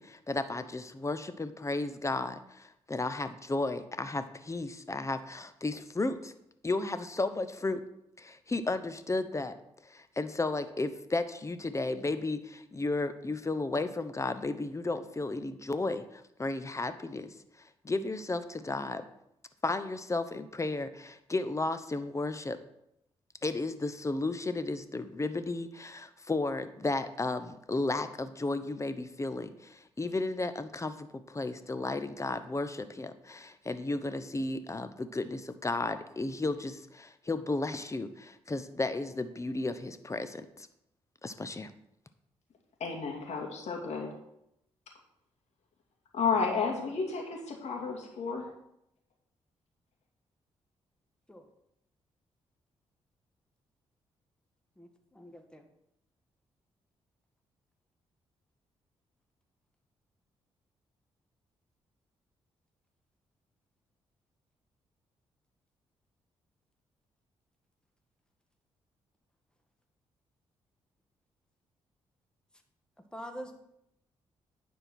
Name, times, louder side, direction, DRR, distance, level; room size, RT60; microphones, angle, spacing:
voice 1, 0.0-6.3 6.6-7.8 8.2-9.6 9.8-17.3 17.8-19.0 19.6-22.6 23.4-40.7 41.2-41.7, left 2 dB, 25° left, 11 dB, 1.0 m, -33 dB
voice 2, 42.8-44.2 46.1-48.5, left 5 dB, 65° left, 1 dB, 2.4 m, -32 dB
voice 3, 54.8-55.7 73.1-73.5, equal, 5° left, 4 dB, 1.7 m, -45 dB
9.9 x 4.5 x 6.2 m, 0.80 s
supercardioid pair, 50°, 12 cm